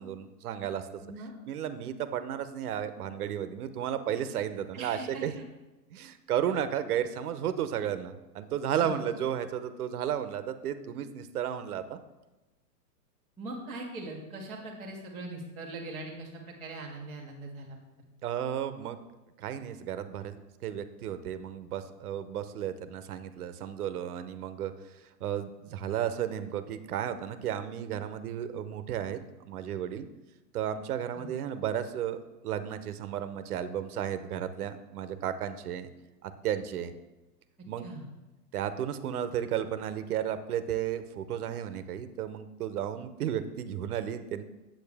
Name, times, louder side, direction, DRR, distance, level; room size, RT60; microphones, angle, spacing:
voice 1, 0.0-0.9 1.5-5.4 5.9-12.0 18.2-19.0 19.4-20.4 20.6-30.1 30.5-32.2 32.4-35.9 36.2-36.9 37.7-37.9 38.5-44.4, right 9 dB, 65° right, 11 dB, 0.8 m, -33 dB
voice 2, 1.0-1.3 4.7-5.2 8.8-9.0 13.4-17.8 31.2-31.3 37.8-38.1, right 2 dB, 5° left, -10 dB, 0.4 m, -41 dB
8.7 x 7.9 x 3.4 m, 1.1 s
hypercardioid pair, 155°, 49 cm